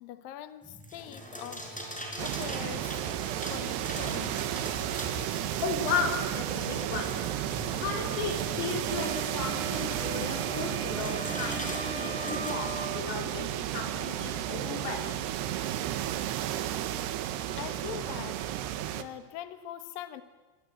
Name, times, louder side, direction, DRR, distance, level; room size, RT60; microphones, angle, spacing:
voice 1, 0.0-1.7 2.2-3.0 3.5-4.4 13.8-13.9 17.5-18.5 18.9-20.2, left 11 dB, 65° left, 10 dB, 2.3 m, -42 dB
sound 1, 0.6-12.6, equal, ahead, 4.5 m, -42 dB
sound 2, 2.2-19.0, right 11 dB, 70° right, 2.8 m, -33 dB
voice 2, 5.6-7.1 7.8-15.2, left 5 dB, 90° left, 2 dB, 7.1 m, -35 dB
sound 3, 8.9-13.1, right 3 dB, 35° right, 2.4 m, -40 dB
25.5 x 24.0 x 8.9 m, 1.3 s
omnidirectional pair, 5.8 m